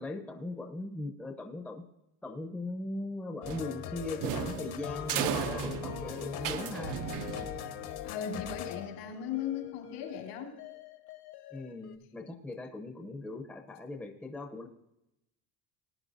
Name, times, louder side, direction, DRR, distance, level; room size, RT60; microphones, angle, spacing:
voice 1, 0.0-1.8 2.2-7.0 11.5-14.7, left 2 dB, 5° left, 2 dB, 0.7 m, -39 dB
sound 1, 3.4-12.0, left 9 dB, 50° left, 1.2 m, -41 dB
sound 2, 3.5-7.9, right 9 dB, 40° right, 0.6 m, -36 dB
voice 2, 8.0-10.6, left 8 dB, 80° left, 0 dB, 3.7 m, -37 dB
20.0 x 10.5 x 2.6 m, 0.84 s
cardioid pair, 175°, 49 cm